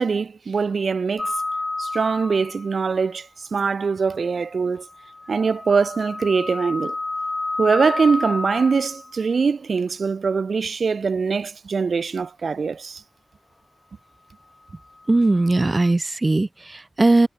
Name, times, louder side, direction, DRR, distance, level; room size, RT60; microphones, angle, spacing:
voice 1, 0.0-1.3 1.8-4.9 5.3-7.0 7.6-13.0, right 5 dB, 80° right, 1.9 m, -22 dB
sound 1, 1.2-2.8 4.8-9.2 15.1-15.9, left 2 dB, 35° left, 0.8 m, -30 dB
voice 2, 15.1-17.3, right 2 dB, 30° right, 0.9 m, -19 dB
wide cardioid pair, 105°, 0 cm